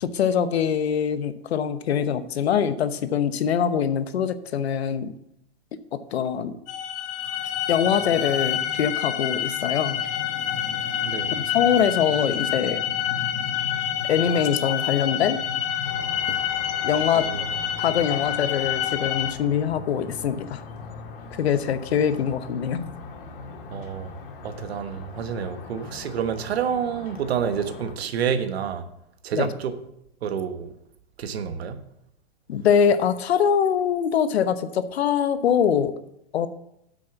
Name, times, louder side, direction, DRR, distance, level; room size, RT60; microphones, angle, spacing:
voice 1, 0.0-5.1 6.1-6.5 7.7-10.0 11.3-12.8 14.1-15.4 16.8-17.3 17.8-20.6 21.4-22.9 29.3-29.5 32.5-35.9 36.3-36.5, left 8 dB, 85° left, 12 dB, 1.0 m, -23 dB
sound 1, 6.7-19.3, left 10 dB, 25° left, 0.7 m, -27 dB
sound 2, 15.8-27.9, left 3 dB, 60° left, 2.1 m, -41 dB
voice 2, 23.7-24.1 24.4-28.8 29.2-29.7 30.2-30.7 31.2-31.8, right 7 dB, 80° right, 9 dB, 1.3 m, -28 dB
8.5 x 6.3 x 7.0 m, 0.80 s
supercardioid pair, 155°, 31 cm